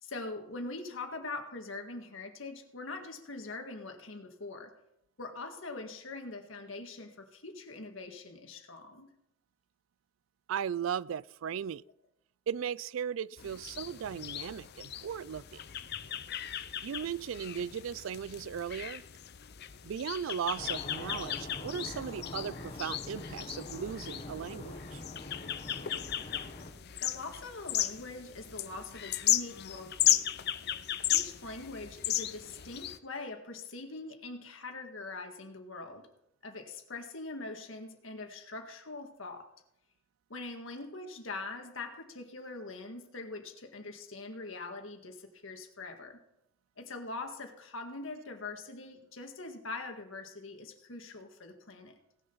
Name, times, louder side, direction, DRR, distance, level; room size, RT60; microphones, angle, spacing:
voice 1, 0.0-4.7 5.2-9.1 27.0-30.3 31.1-36.1 36.4-39.5 40.3-46.2 46.8-52.0, left 3 dB, 75° left, 1.8 m, -43 dB
voice 2, 10.5-11.8 12.5-15.4 16.8-19.0 19.8-25.0, right 8 dB, 80° right, 0.4 m, -37 dB
sound 1, 13.4-33.0, left 12 dB, 55° left, 0.6 m, -35 dB
sound 2, 20.6-26.7, left 2 dB, 35° left, 1.2 m, -44 dB
18.0 x 6.9 x 5.6 m
head